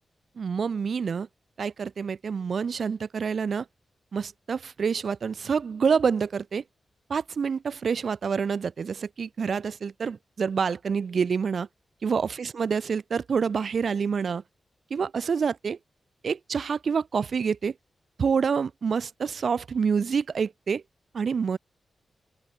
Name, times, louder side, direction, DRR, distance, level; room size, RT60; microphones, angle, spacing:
voice 1, 0.4-1.3 1.6-3.6 4.1-6.6 7.1-11.7 12.0-14.4 14.9-15.8 16.2-17.7 18.2-20.8 21.1-21.6, right 6 dB, 55° right, 1.5 m, -27 dB
open air
wide cardioid pair, 150°, 0 cm